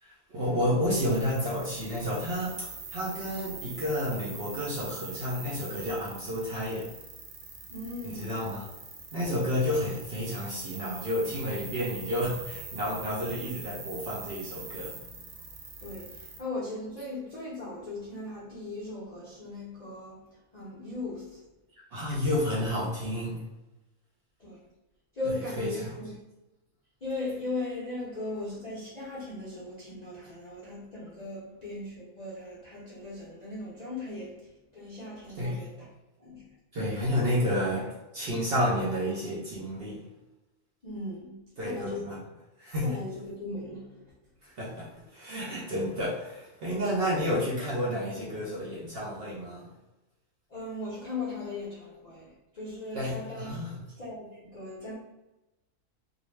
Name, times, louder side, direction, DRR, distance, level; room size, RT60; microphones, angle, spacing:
voice 1, 0.0-6.9 8.0-8.7 9.1-15.0 21.9-23.4 25.2-25.9 35.4-35.6 36.7-40.0 41.6-42.2 42.6-42.9 44.4-49.7 52.9-53.8, equal, 60° right, -5 dB, 0.6 m, -31 dB
sound 1, 0.9-16.4, right 4 dB, 80° right, 1.0 m, -43 dB
voice 2, 7.7-8.5 9.4-9.6 15.8-20.3 20.5-21.5 24.4-24.6 25.1-26.2 27.0-35.9 36.2-36.5 40.8-42.1 42.8-44.1 50.5-53.7 54.0-55.0, left 2 dB, 55° left, -8 dB, 0.4 m, -38 dB
2.4 x 2.0 x 3.0 m, 1.0 s
omnidirectional pair, 1.4 m